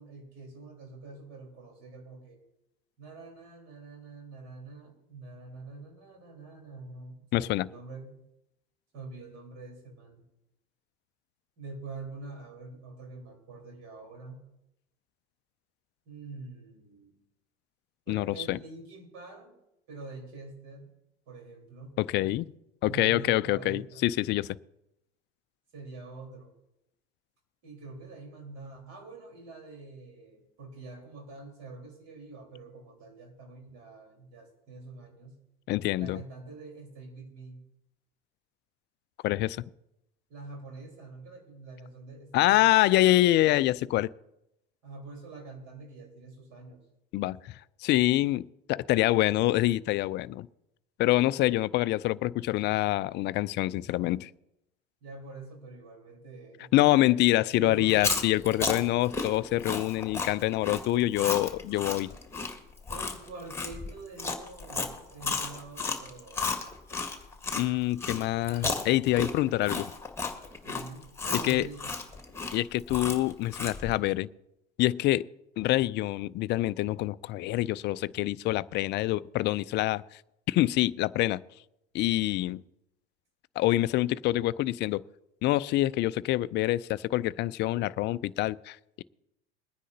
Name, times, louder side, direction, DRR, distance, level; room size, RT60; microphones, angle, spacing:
voice 1, 0.0-2.4 3.0-8.1 8.9-10.2 11.6-14.5 16.1-17.1 18.1-19.5 19.9-20.9 21.3-22.0 22.8-24.0 25.7-26.5 27.6-35.4 36.0-37.6 40.3-42.9 44.8-46.8 55.0-58.1 62.9-66.5 70.6-71.9, right 3 dB, 50° right, 4.2 m, -45 dB
voice 2, 7.3-7.7 18.1-18.6 22.0-22.5 22.8-24.6 35.7-36.2 39.2-39.6 42.3-44.1 47.1-50.5 51.0-54.3 56.7-62.1 67.5-69.9 71.4-71.7 72.5-74.3 74.8-75.2 75.6-80.0 80.5-81.4 81.9-82.6 83.6-85.0 85.4-89.0, left 16 dB, 35° left, 0.4 m, -26 dB
Chewing mastication, 57.8-67.6 68.0-73.9, left 4 dB, 10° left, 1.8 m, -33 dB
22.5 x 9.8 x 2.8 m
hypercardioid pair, 85°, 35 cm